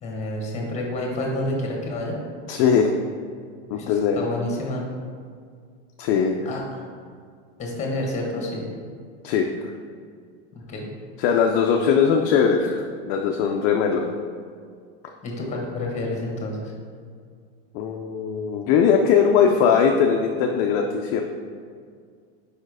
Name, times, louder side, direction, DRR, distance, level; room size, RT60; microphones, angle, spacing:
voice 1, 0.0-2.2 3.7-4.8 6.4-6.9 7.6-8.7 10.5-10.9 15.2-16.7, left 1 dB, 20° left, -1 dB, 1.4 m, -29 dB
voice 2, 2.5-2.9 3.7-4.2 6.0-6.4 9.2-9.5 11.2-14.0 17.7-21.2, left 6 dB, 45° left, 2 dB, 0.5 m, -20 dB
5.0 x 4.4 x 4.8 m, 2.1 s
supercardioid pair, 140°, 32 cm